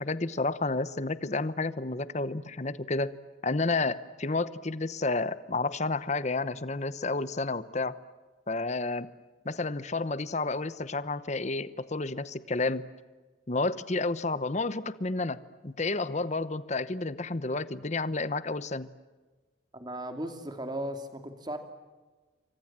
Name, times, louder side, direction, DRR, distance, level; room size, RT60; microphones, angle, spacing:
voice 1, 0.0-3.1 3.4-8.0 8.5-9.1 9.4-12.9 13.5-18.9, left 3 dB, 35° left, 15 dB, 0.9 m, -31 dB
voice 2, 19.7-21.6, right 1 dB, 20° right, 7 dB, 2.7 m, -36 dB
28.5 x 25.0 x 7.5 m, 1.3 s
head